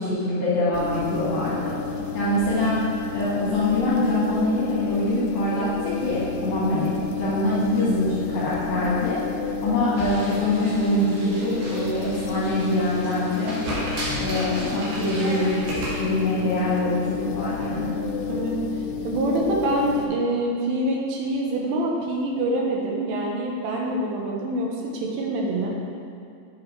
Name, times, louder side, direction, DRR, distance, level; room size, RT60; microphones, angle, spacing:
voice 1, 0.0-1.8 2.1-2.8 3.1-9.2 9.6-13.6 14.2-15.6 16.0-18.0, left 1 dB, 70° left, -9 dB, 2.3 m, -24 dB
sound 1, 0.7-20.1, left 5 dB, 90° left, 3.2 m, -31 dB
sound 2, 10.0-16.0, equal, 60° right, 2.7 m, -34 dB
voice 2, 19.0-25.7, right 1 dB, 85° right, -2 dB, 3.4 m, -25 dB
9.1 x 6.0 x 2.9 m, 2.6 s
omnidirectional pair, 5.7 m